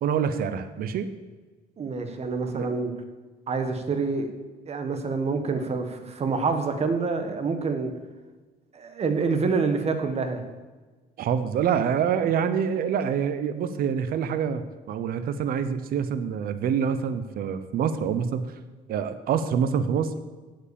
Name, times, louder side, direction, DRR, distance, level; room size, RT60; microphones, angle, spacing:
voice 1, 0.0-1.1 2.5-2.8 11.2-18.5 18.9-20.1, right 7 dB, 60° right, 11 dB, 0.8 m, -26 dB
voice 2, 1.8-2.9 3.5-4.3 4.7-7.9 8.7-10.4, right 4 dB, 40° right, 7 dB, 1.5 m, -27 dB
8.6 x 8.0 x 7.1 m, 1.3 s
cardioid pair, 110°, 17 cm